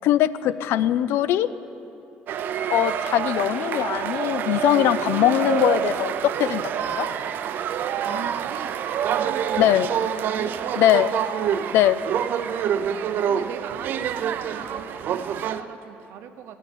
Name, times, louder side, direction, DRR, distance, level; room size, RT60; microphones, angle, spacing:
voice 1, 0.0-1.5 2.7-7.1 9.6-9.9 10.8-11.1 11.7-12.0, left 12 dB, 75° left, 15 dB, 0.5 m, -21 dB
sound 1, 2.3-15.6, right 9 dB, 55° right, 0.5 m, -27 dB
voice 2, 8.0-11.0 12.0-12.1 12.7-16.6, right 8 dB, 75° right, 9 dB, 0.8 m, -41 dB
17.0 x 6.4 x 8.5 m, 2.9 s
cardioid pair, 160°, 4 cm